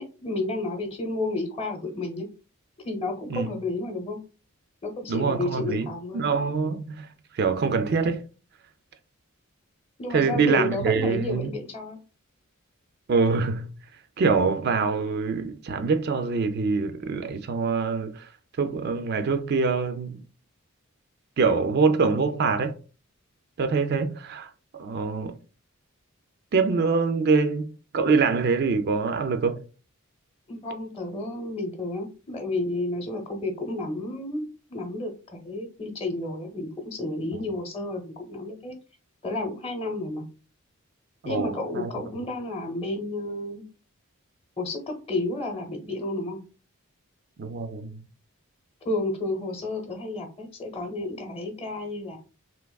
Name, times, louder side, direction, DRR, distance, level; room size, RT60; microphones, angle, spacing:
voice 1, 0.0-2.3 2.8-4.2 4.8-6.3 10.0-12.0 30.5-38.8 39.2-40.2 41.2-43.7 44.6-46.4 48.8-52.2, left 2 dB, 25° left, 0.8 m, -31 dB
voice 2, 5.1-8.2 10.1-11.5 13.1-20.2 21.4-22.7 23.6-24.5 24.8-25.4 26.5-29.6 37.3-37.5 41.2-41.9 47.4-48.0, right 4 dB, 45° right, 0.3 m, -25 dB
3.4 x 2.8 x 2.3 m
head